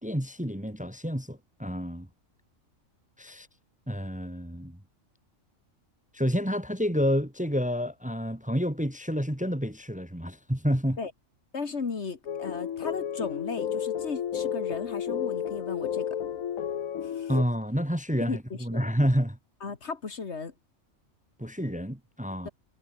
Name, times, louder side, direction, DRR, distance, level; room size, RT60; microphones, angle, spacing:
voice 1, 0.0-2.1 3.2-3.5 3.9-4.8 6.1-11.0 17.3-19.4 21.4-22.5, equal, 5° right, 1.5 m, -29 dB
voice 2, 11.5-16.1 17.0-17.3 18.3-18.4 18.7-18.9 19.6-20.5, left 4 dB, 55° left, 1.9 m, -35 dB
sound 1, 12.3-17.4, left 9 dB, 90° left, 1.5 m, -32 dB
omnidirectional pair, 1.4 m